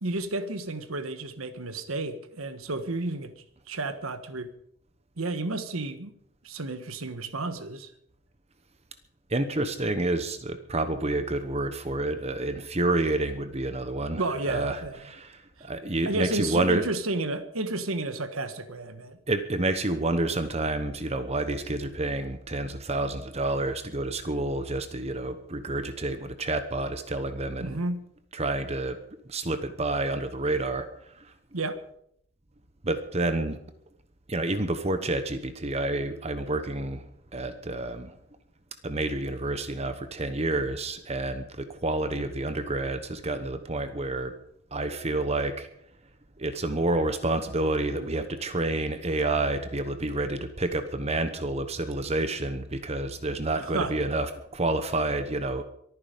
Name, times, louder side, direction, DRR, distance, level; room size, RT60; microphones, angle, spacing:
voice 1, 0.0-4.5 5.2-6.1 6.4-7.9 14.2-15.1 15.6-15.7 16.0-19.2 27.6-28.0 31.5-31.8 53.6-53.9, right 2 dB, 80° right, 10 dB, 1.4 m, -32 dB
voice 2, 9.3-16.8 19.3-27.8 28.3-29.0 29.3-30.9 31.1-31.3 32.8-33.6 34.3-38.1 38.8-44.3 44.7-45.7 46.4-55.6, right 2 dB, 30° right, 10 dB, 1.0 m, -29 dB
23.5 x 9.8 x 5.2 m, 0.70 s
head